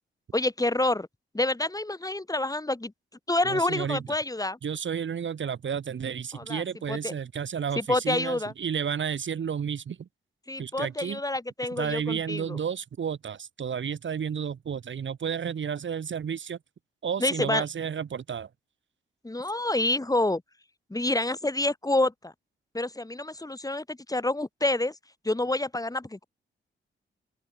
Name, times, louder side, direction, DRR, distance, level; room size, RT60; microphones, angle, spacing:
voice 1, 0.3-1.1 1.3-2.9 3.3-4.6 6.3-7.1 7.8-8.5 10.5-12.6 17.2-17.6 19.2-20.4 20.9-22.3 22.7-25.0 25.2-26.2, left 2 dB, 15° left, 7.9 m, -28 dB
voice 2, 3.4-4.0 4.6-10.1 10.6-11.2 11.7-16.6 17.0-18.5, right 7 dB, 65° right, 4.8 m, -32 dB
open air
cardioid pair, 65°, 21 cm